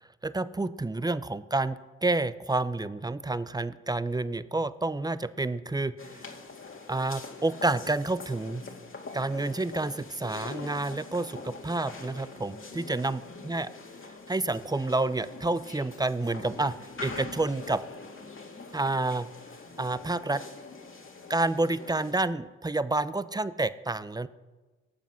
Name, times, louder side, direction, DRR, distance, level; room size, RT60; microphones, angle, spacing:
voice 1, 0.0-6.3 6.9-8.6 9.1-13.7 14.3-16.7 17.0-17.8 18.7-19.3 19.8-20.4 21.3-24.3, right 2 dB, 10° right, 15 dB, 0.7 m, -29 dB
sound 1, 6.0-22.1, left 3 dB, 40° left, 2.2 m, -44 dB
18.0 x 7.2 x 5.8 m, 1.2 s
hypercardioid pair, 45°, 31 cm